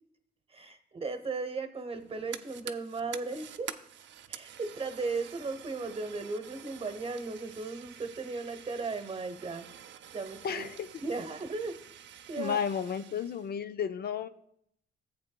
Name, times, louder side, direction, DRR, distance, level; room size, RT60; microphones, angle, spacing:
voice 1, 0.5-3.7 4.3-9.7 10.1-10.7 11.0-11.8 12.3-12.6, right 3 dB, 30° right, 9 dB, 0.9 m, -36 dB
Fire, 1.9-13.5, right 10 dB, 65° right, 0.6 m, -48 dB
voice 2, 10.4-10.9 12.4-14.3, left 7 dB, 55° left, 11 dB, 0.4 m, -32 dB
13.5 x 8.2 x 2.2 m, 0.70 s
cardioid pair, 90°, 20 cm